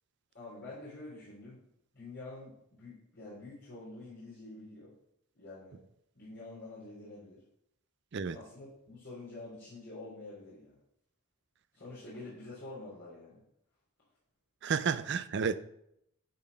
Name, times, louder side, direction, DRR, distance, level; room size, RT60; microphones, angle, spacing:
voice 1, 0.3-1.6 1.9-4.9 5.3-5.8 6.1-7.4 8.3-10.8 11.7-13.4, left 2 dB, 50° left, 3.4 m, -47 dB
voice 2, 14.6-15.6, right 6 dB, 50° right, 0.4 m, -31 dB
10.5 x 4.2 x 5.5 m
head